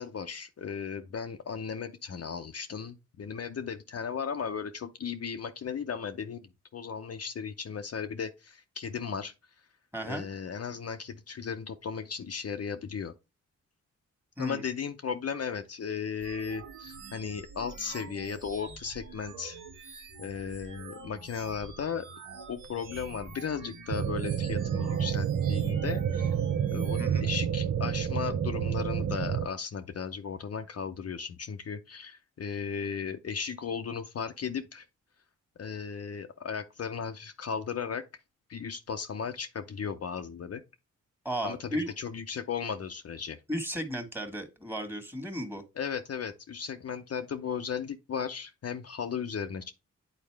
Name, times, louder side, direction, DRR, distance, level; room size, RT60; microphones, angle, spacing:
voice 1, 0.0-9.3 10.1-13.1 14.4-19.6 20.2-22.1 22.5-26.3 26.7-34.8 35.6-38.0 38.5-40.6 41.4-41.7 42.0-43.4 45.8-49.7, left 6 dB, 50° left, 0.7 m, -36 dB
voice 2, 9.9-10.2 14.4-14.6 27.0-27.2 41.2-41.9 43.5-45.6, right 1 dB, 5° right, 1.7 m, -34 dB
sound 1, 16.2-27.0, right 3 dB, 75° right, 1.5 m, -47 dB
sound 2, 23.9-29.5, right 8 dB, 45° right, 0.7 m, -29 dB
8.8 x 4.1 x 3.4 m
cardioid pair, 55°, 32 cm